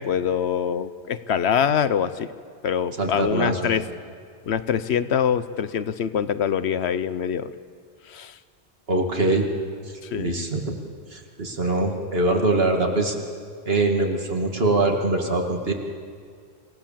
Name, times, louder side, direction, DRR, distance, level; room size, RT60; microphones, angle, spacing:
voice 1, 0.0-2.3 2.6-3.8 4.5-7.5 8.1-8.3 10.0-10.4, left 8 dB, 75° left, 14 dB, 1.1 m, -24 dB
voice 2, 3.0-3.7 8.9-9.5 10.1-10.8 11.1-13.1 13.7-15.7, right 2 dB, 60° right, 2 dB, 2.5 m, -23 dB
27.0 x 17.0 x 7.5 m, 2.1 s
omnidirectional pair, 1.1 m